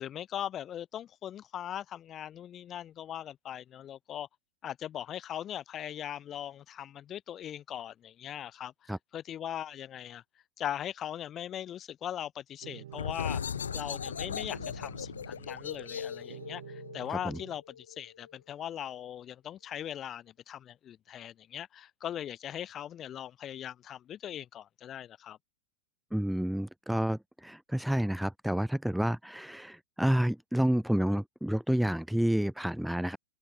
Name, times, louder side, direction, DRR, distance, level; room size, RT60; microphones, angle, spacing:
voice 1, 0.0-4.3 4.6-10.2 10.6-13.4 13.7-25.4, left 10 dB, 30° left, 2.1 m, -40 dB
sound 1, 12.6-17.6, right 12 dB, 65° right, 1.9 m, -49 dB
sound 2, 12.9-18.3, left 7 dB, 80° left, 2.7 m, -38 dB
voice 2, 26.1-33.2, equal, ahead, 1.1 m, -29 dB
hypercardioid pair, 100°, 0 cm